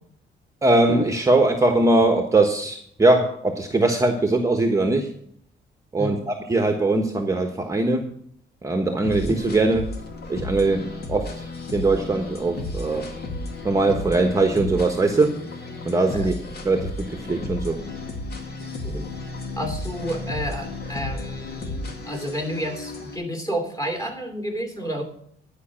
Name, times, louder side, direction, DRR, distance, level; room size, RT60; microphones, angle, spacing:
voice 1, 0.6-5.1 5.9-8.1 8.6-9.9 10.3-11.3 11.7-13.1 13.6-15.3 15.8-16.3 16.6-17.8, right 2 dB, 15° right, 3 dB, 1.1 m, -21 dB
sound 1, 9.0-23.2, left 2 dB, 55° left, 2.2 m, -33 dB
voice 2, 19.5-25.0, equal, 15° left, 4 dB, 3.0 m, -30 dB
11.5 x 5.4 x 8.6 m, 0.66 s
cardioid pair, 90°, 20 cm